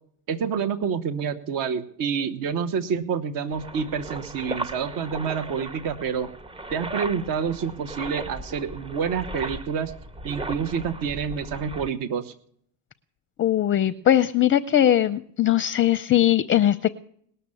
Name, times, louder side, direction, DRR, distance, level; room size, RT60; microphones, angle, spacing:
voice 1, 0.3-6.3 6.7-9.9 10.2-12.3, right 6 dB, 50° right, 10 dB, 1.2 m, -28 dB
sound 1, 3.5-11.9, right 1 dB, 15° right, 0.7 m, -37 dB
voice 2, 13.4-16.9, left 11 dB, 30° left, 14 dB, 0.5 m, -20 dB
19.5 x 6.8 x 9.7 m, 0.65 s
supercardioid pair, 100°, 42 cm